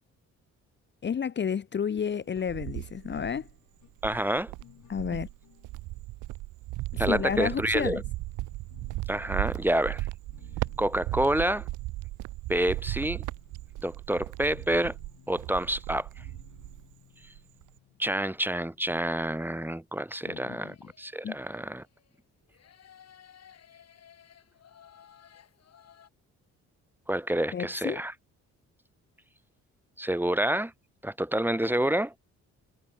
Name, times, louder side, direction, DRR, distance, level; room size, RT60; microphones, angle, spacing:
voice 1, 1.0-3.5 4.9-5.3 6.9-8.0 20.2-20.7 21.2-21.4 27.5-28.0, left 7 dB, 35° left, 0.9 m, -31 dB
Cricket, 2.0-3.5 4.0-16.9 17.2-17.8, right 19 dB, 90° right, 0.6 m, -36 dB
sound 1, 2.3-6.2 7.0-19.4, left 13 dB, 80° left, 5.6 m, -58 dB
voice 2, 4.0-4.5 7.0-8.0 9.1-10.1 10.8-11.7 12.5-13.2 13.8-15.0 15.3-16.1 18.0-21.8 27.1-28.1 30.0-30.7 31.0-32.1, right 1 dB, 5° right, 1.6 m, -28 dB
sound 2, 20.2-22.2 22.5-26.1, left 9 dB, 55° left, 4.2 m, -57 dB
cardioid pair, 90°, 30 cm